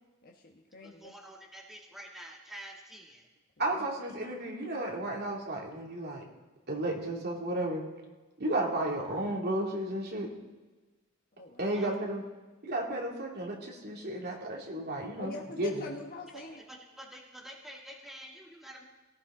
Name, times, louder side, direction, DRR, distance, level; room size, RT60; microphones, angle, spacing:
voice 1, 0.2-1.1 3.6-3.9 11.4-11.7 15.1-16.6, left 2 dB, 45° left, -1 dB, 1.3 m, -44 dB
voice 2, 0.8-3.3 11.7-11.9 16.3-16.4 16.7-18.8, right 1 dB, ahead, -2 dB, 1.6 m, -48 dB
voice 3, 3.6-6.2 6.7-7.8 8.4-10.3 11.6-12.2 12.6-15.3 15.6-15.9, right 1 dB, 50° right, -1 dB, 2.7 m, -33 dB
18.0 x 15.5 x 3.8 m, 1.2 s
head